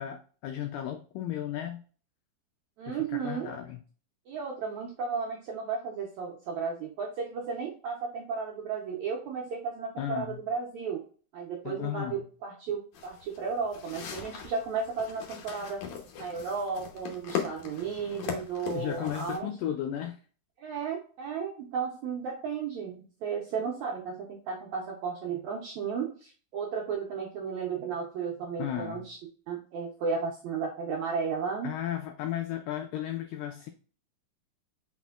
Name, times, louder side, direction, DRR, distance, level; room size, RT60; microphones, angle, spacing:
voice 1, 0.0-1.8 2.9-3.8 10.0-10.4 11.7-12.3 18.7-20.2 28.6-29.1 31.6-33.7, left 11 dB, 85° left, 1.9 m, -35 dB
voice 2, 2.8-3.5 4.3-11.0 11.3-15.8 16.2-19.5 20.6-29.2 29.5-31.7, right 5 dB, 80° right, 1.6 m, -34 dB
sound 1, 12.9-19.4, left 8 dB, 70° left, 2.1 m, -39 dB
5.3 x 4.2 x 2.3 m
omnidirectional pair, 4.3 m